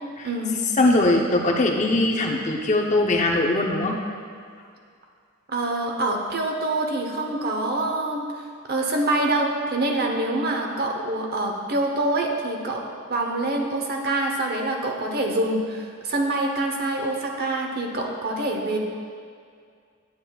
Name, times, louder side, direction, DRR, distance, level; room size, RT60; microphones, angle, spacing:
voice 1, 0.2-0.6 5.5-8.2 8.7-18.8, right 2 dB, 50° right, 1 dB, 0.8 m, -25 dB
voice 2, 0.8-4.0, left 2 dB, 35° left, 1 dB, 0.6 m, -21 dB
9.4 x 8.2 x 2.3 m, 2.2 s
head